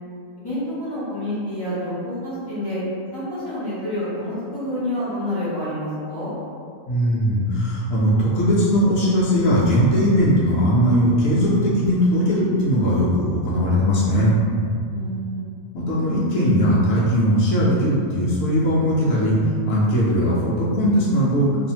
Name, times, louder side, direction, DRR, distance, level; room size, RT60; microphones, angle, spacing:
voice 1, 0.4-2.8 3.1-6.3 14.9-15.5, left 1 dB, 40° left, -12 dB, 0.3 m, -28 dB
voice 2, 6.9-14.4 15.7-19.4 19.7-21.7, equal, 70° left, -7 dB, 0.9 m, -19 dB
2.6 x 2.4 x 2.7 m, 2.3 s
omnidirectional pair, 1.6 m